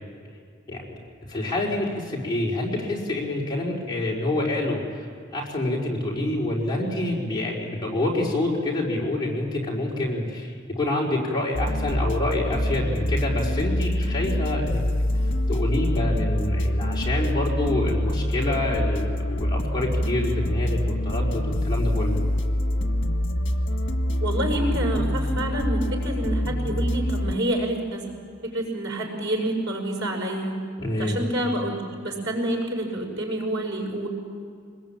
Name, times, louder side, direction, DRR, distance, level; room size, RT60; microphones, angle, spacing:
voice 1, 1.3-5.1 5.3-14.8 15.5-22.2 30.8-31.2, left 1 dB, 25° left, -4 dB, 4.8 m, -27 dB
sound 1, 11.5-27.4, left 1 dB, 75° left, 1.7 m, -25 dB
voice 2, 24.2-28.1 28.4-30.6 31.0-34.1, right 1 dB, 90° right, 1 dB, 6.3 m, -28 dB
25.0 x 21.0 x 8.9 m, 2.3 s
head